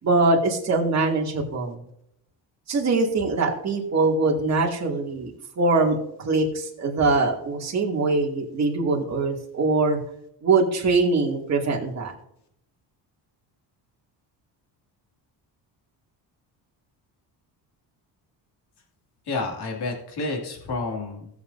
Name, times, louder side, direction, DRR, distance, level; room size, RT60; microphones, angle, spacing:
voice 1, 0.0-1.8 2.7-5.3 5.6-6.0 6.2-10.0 10.4-12.1, right 3 dB, 35° right, -1 dB, 2.6 m, -22 dB
voice 2, 19.3-21.3, left 3 dB, 60° left, 0 dB, 2.7 m, -30 dB
19.5 x 7.2 x 2.8 m, 0.74 s
cardioid pair, 160°, 44 cm